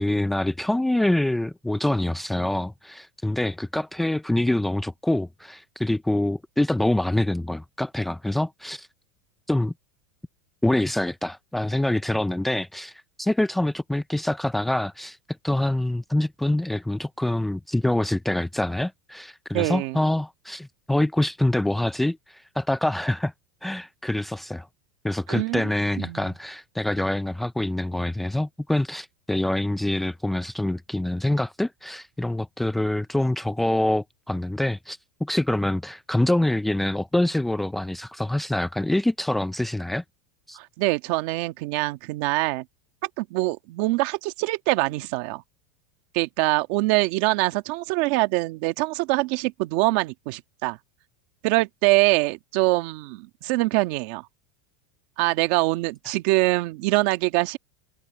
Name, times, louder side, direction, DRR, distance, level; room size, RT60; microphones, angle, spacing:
voice 1, 0.0-8.9 9.5-9.7 10.6-15.2 15.4-23.3 23.6-24.7 25.0-40.0 40.5-40.6, left 1 dB, 5° left, 0.4 m, -25 dB
voice 2, 19.5-20.0 25.3-25.6 26.0-26.3 40.6-42.6 43.2-45.4 46.1-50.8 51.4-54.2 55.2-57.6, right 21 dB, 50° right, 1.4 m, -24 dB
supercardioid pair, 165°, 6 cm